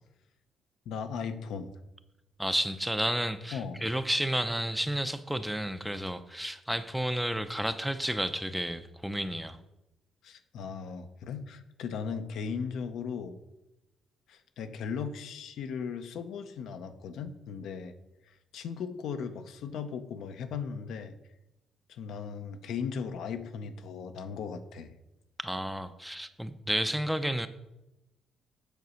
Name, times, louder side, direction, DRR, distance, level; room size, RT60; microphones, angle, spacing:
voice 1, 0.9-1.7 3.5-3.9 10.2-13.4 14.3-17.9 18.3-21.1 21.9-24.9, left 6 dB, 80° left, 8 dB, 0.7 m, -37 dB
voice 2, 2.4-9.6 25.4-27.5, equal, 5° right, 11 dB, 0.5 m, -31 dB
8.2 x 4.1 x 6.3 m, 0.94 s
cardioid pair, 90°, 0 cm